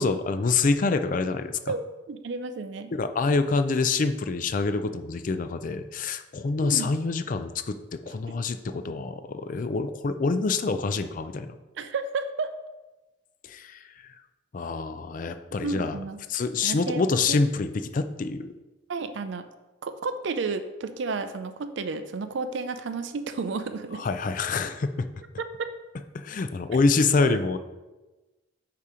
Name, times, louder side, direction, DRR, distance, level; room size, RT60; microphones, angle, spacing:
voice 1, 0.0-1.6 2.9-11.5 13.4-13.8 14.5-16.0 16.3-18.5 23.9-25.1 26.1-27.6, left 4 dB, 40° left, 9 dB, 0.4 m, -26 dB
voice 2, 1.7-2.9 6.6-6.9 11.8-12.5 15.6-16.2 16.6-17.4 18.9-19.5 19.8-24.0 25.4-25.7 27.2-27.4, right 4 dB, 60° right, 10 dB, 0.4 m, -32 dB
8.6 x 2.9 x 4.8 m, 1.1 s
head